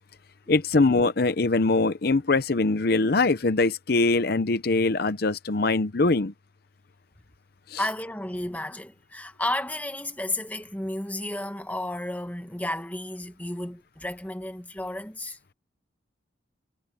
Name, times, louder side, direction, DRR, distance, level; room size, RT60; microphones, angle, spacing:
voice 1, 0.5-6.3 7.7-7.8, left 3 dB, 55° left, 0.7 m, -22 dB
voice 2, 7.8-15.4, left 1 dB, 10° left, 1.2 m, -32 dB
head